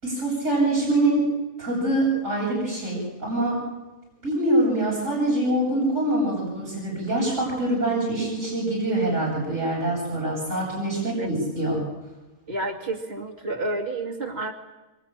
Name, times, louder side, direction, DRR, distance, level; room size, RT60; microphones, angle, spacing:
voice 1, 0.0-1.3 1.6-3.6 4.2-11.8, right 1 dB, 85° right, -6 dB, 8.3 m, -24 dB
voice 2, 12.5-14.5, right 2 dB, 50° right, 0 dB, 2.9 m, -30 dB
26.0 x 24.5 x 9.0 m, 1.1 s
omnidirectional pair, 1.3 m